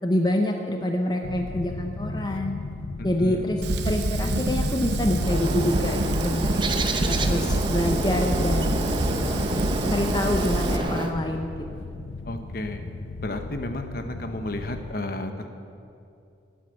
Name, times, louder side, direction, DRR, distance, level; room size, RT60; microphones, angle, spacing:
voice 1, 0.0-2.6 3.0-6.7 7.1-9.5 9.9-11.8, left 1 dB, 20° left, 3 dB, 0.7 m, -27 dB
sound 1, 1.2-15.0, left 3 dB, 80° left, 0.6 m, -35 dB
voice 2, 3.0-3.4 12.3-12.8 13.2-15.5, left 1 dB, 50° left, 7 dB, 1.0 m, -32 dB
Fire, 3.6-10.8, right 2 dB, 65° right, 0.9 m, -27 dB
Bird, 5.2-11.1, right 2 dB, 25° right, 0.8 m, -29 dB
13.0 x 9.0 x 9.0 m, 2.6 s
head